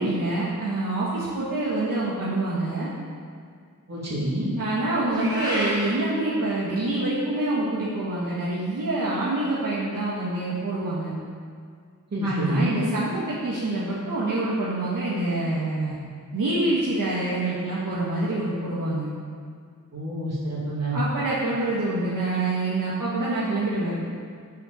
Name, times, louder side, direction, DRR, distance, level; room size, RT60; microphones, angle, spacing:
voice 1, 0.0-2.9 4.6-11.1 12.2-16.0 16.3-19.1 20.9-24.0, right 2 dB, 80° right, -7 dB, 1.3 m, -26 dB
voice 2, 3.9-4.6 12.1-12.8 19.9-21.0, right 1 dB, 55° right, -6 dB, 2.3 m, -27 dB
Meow, 5.1-5.9, equal, 10° right, 1.8 m, -29 dB
6.5 x 5.2 x 7.0 m, 2.1 s
wide cardioid pair, 115°, 33 cm